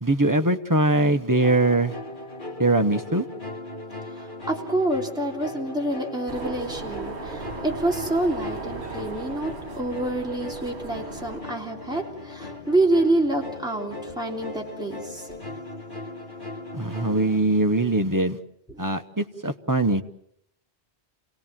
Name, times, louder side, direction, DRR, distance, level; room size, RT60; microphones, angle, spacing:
voice 1, 0.0-1.9 2.6-3.2 16.7-18.4 18.8-20.0, right 2 dB, 20° right, 6 dB, 0.9 m, -22 dB
sound 1, 1.4-17.4, left 2 dB, 50° left, 2.8 m, -38 dB
voice 2, 4.1-15.4 18.7-18.8, right 2 dB, 5° right, -1 dB, 3.2 m, -27 dB
sound 2, 6.3-11.4, right 4 dB, 70° right, 1.7 m, -37 dB
28.0 x 18.5 x 7.5 m, 0.76 s
omnidirectional pair, 1.1 m